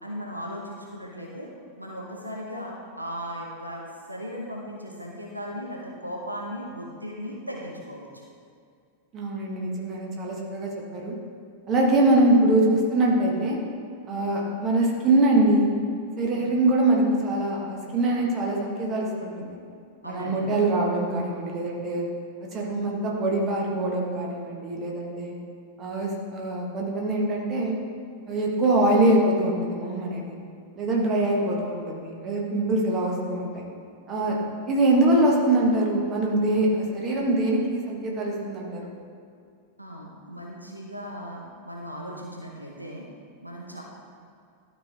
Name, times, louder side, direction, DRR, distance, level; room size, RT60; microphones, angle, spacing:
voice 1, 0.0-1.5 1.8-8.3 16.4-16.5 20.0-20.4 39.8-43.0 43.4-43.8, equal, 85° right, -2 dB, 0.9 m, -37 dB
voice 2, 9.1-11.2 11.7-13.6 14.1-15.7 16.2-19.6 20.0-22.0 22.5-25.3 25.8-27.8 28.3-30.4 30.7-33.6 34.1-34.4 34.7-38.9, right 2 dB, 30° right, -2 dB, 1.5 m, -23 dB
12.5 x 4.6 x 3.5 m, 2.3 s
figure-of-eight pair, 90°, 0 cm